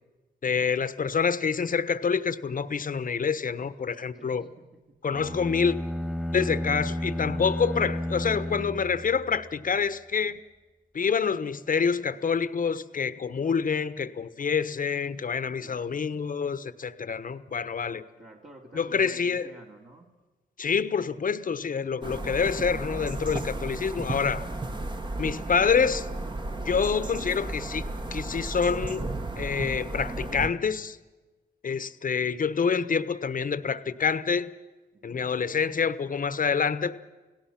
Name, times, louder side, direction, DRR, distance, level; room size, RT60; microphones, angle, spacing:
voice 1, 0.4-4.4 5.0-5.8 6.3-10.4 10.9-18.0 18.7-19.5 20.6-24.5 25.2-26.1 26.6-27.8 28.1-29.0 29.4-31.0 31.6-34.5 35.0-37.0, left 6 dB, 45° left, 14 dB, 1.2 m, -27 dB
voice 2, 4.1-4.6 15.6-15.9 18.2-20.1 34.9-35.3, right 2 dB, 45° right, -3 dB, 2.9 m, -49 dB
sound 1, 5.1-9.5, left 1 dB, 5° right, 2.0 m, -32 dB
sound 2, 22.0-30.5, right 2 dB, 25° right, 1.5 m, -34 dB
29.5 x 17.5 x 6.0 m, 1.2 s
cardioid pair, 65°, 19 cm